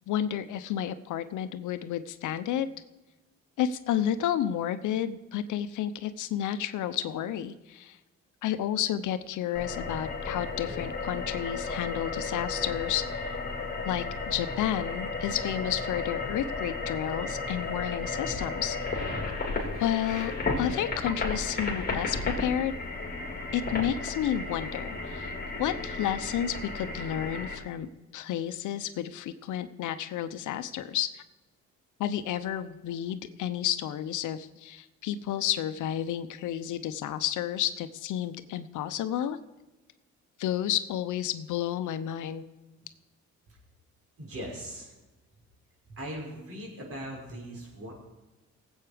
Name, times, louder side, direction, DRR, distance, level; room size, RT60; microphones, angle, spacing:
voice 1, 0.1-2.7 3.6-8.0 8.4-13.3 13.9-18.8 19.8-20.3 20.6-22.7 23.5-25.3 25.6-27.9 28.1-31.2 32.0-39.4 40.4-42.5, left 10 dB, 80° left, 12 dB, 0.8 m, -31 dB
sound 1, 9.5-27.6, left 3 dB, 30° left, 3.7 m, -34 dB
voice 2, 44.2-44.9 45.9-47.9, equal, 50° right, -2 dB, 5.7 m, -39 dB
18.5 x 8.2 x 5.1 m, 1.1 s
cardioid pair, 90°, 30 cm